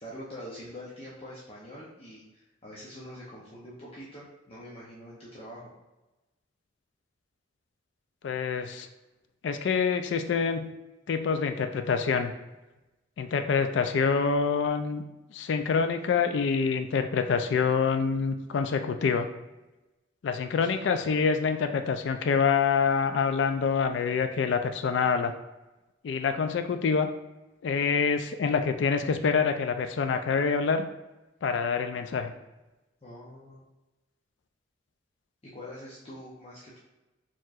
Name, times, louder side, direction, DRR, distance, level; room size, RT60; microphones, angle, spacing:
voice 1, 0.0-5.7 20.6-20.7 33.0-33.6 35.4-36.8, equal, 30° left, -7 dB, 0.6 m, -44 dB
voice 2, 8.2-8.9 9.4-10.7 11.1-12.3 13.2-15.0 15.3-19.3 20.2-25.3 26.0-27.1 27.6-30.9 31.4-32.3, left 5 dB, 65° left, 7 dB, 0.3 m, -26 dB
4.5 x 3.0 x 2.4 m, 1.0 s
head